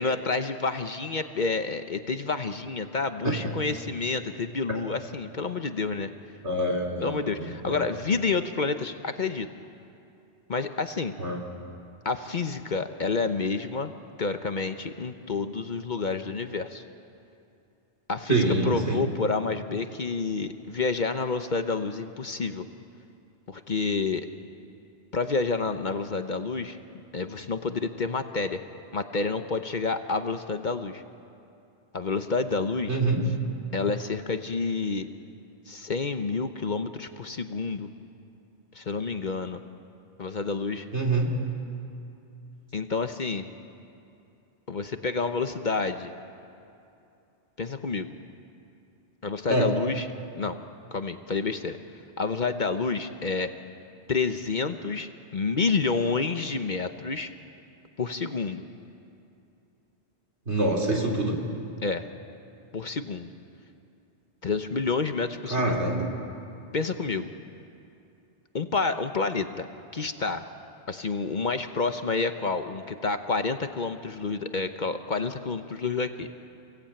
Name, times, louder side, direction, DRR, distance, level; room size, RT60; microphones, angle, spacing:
voice 1, 0.0-6.1 7.0-9.5 10.5-11.2 12.0-13.9 14.2-16.8 18.1-22.7 23.5-24.3 25.1-26.8 27.1-28.6 28.9-31.0 31.9-33.0 33.7-35.1 35.7-37.9 38.7-39.6 40.2-40.9 42.7-43.5 44.7-46.1 47.6-48.1 49.2-50.1 50.4-50.6 50.9-51.8 52.2-53.5 54.1-57.3 58.0-58.6 61.8-62.1 62.7-63.3 64.4-65.8 66.7-67.3 68.5-69.7 69.9-70.5 70.9-76.3, left 4 dB, 45° left, 8 dB, 0.9 m, -29 dB
voice 2, 6.4-7.8 11.2-11.4 18.3-19.1 32.9-33.2 40.9-41.3 49.5-49.7 60.5-61.4 65.5-66.1, right 2 dB, 75° right, 1 dB, 3.5 m, -25 dB
29.0 x 17.5 x 8.8 m, 2.7 s
omnidirectional pair, 1.2 m